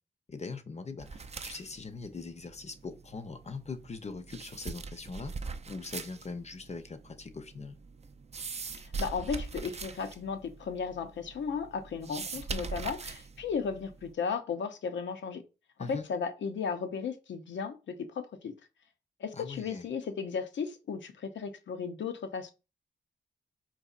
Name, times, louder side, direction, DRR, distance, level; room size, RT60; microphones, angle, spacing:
voice 1, 0.3-5.3 5.7-7.8 15.8-16.0 19.3-19.9, left 4 dB, 35° left, 0.6 m, -41 dB
sound 1, 1.0-14.1, right 4 dB, 35° right, 0.4 m, -42 dB
voice 2, 9.0-15.4 15.9-18.5 19.2-22.5, left 6 dB, 75° left, 0.6 m, -35 dB
4.1 x 2.5 x 2.4 m
cardioid pair, 55°, 19 cm